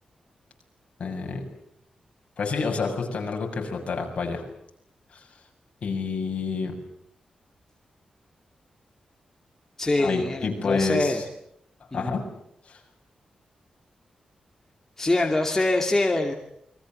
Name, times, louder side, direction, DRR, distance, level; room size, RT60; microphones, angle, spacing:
voice 1, 1.0-1.5 2.4-4.4 5.8-6.7 10.0-11.2 11.9-12.2 12.7-12.8, left 4 dB, 50° left, 2 dB, 7.1 m, -28 dB
voice 2, 9.8-11.2 11.9-12.1 15.0-16.3, left 2 dB, 15° left, 2 dB, 2.6 m, -24 dB
29.0 x 22.5 x 7.8 m, 0.73 s
wide cardioid pair, 165°, 2 cm